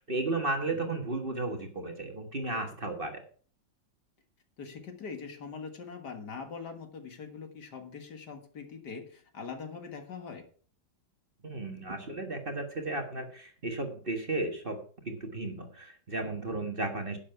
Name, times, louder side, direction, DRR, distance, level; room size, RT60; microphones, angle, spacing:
voice 1, 0.0-3.2 11.4-14.8 15.0-17.2, right 2 dB, 30° right, 4 dB, 1.5 m, -34 dB
voice 2, 4.6-10.4, left 5 dB, 65° left, 6 dB, 2.3 m, -42 dB
11.0 x 7.3 x 5.8 m, 0.43 s
omnidirectional pair, 2.0 m